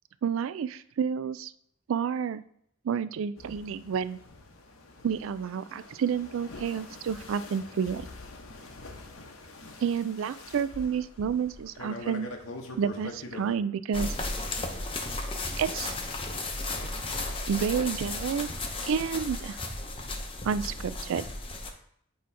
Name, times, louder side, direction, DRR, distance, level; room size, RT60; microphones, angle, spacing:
voice 1, 0.2-1.5 1.9-2.4 2.8-4.2 5.0-8.1 9.8-12.3 12.8-14.2 15.6-15.9 17.5-18.5 18.8-19.6 20.4-21.2, right 7 dB, 70° right, 15 dB, 0.3 m, -30 dB
sound 1, 3.4-13.6, left 2 dB, 80° left, 0.9 m, -44 dB
sound 2, 13.9-21.7, left 2 dB, 25° left, 0.7 m, -34 dB
8.3 x 2.9 x 4.6 m, 0.69 s
head